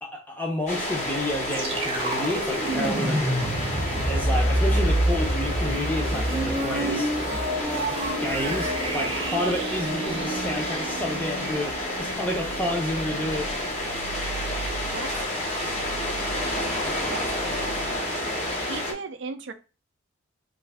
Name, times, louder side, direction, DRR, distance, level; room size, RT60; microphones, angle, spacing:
voice 1, 0.0-3.3 4.1-7.2 8.2-13.5, left 1 dB, 10° left, 0.7 m, -30 dB
sound 1, 0.7-18.9, left 1 dB, 35° left, 0.9 m, -30 dB
sound 2, 1.4-18.0, right 3 dB, 80° right, 0.8 m, -39 dB
sound 3, 1.5-11.3, right 1 dB, 25° right, 0.7 m, -27 dB
voice 2, 14.9-15.3 17.1-18.1 18.6-19.5, right 4 dB, 55° right, 0.4 m, -37 dB
3.2 x 2.5 x 3.4 m
head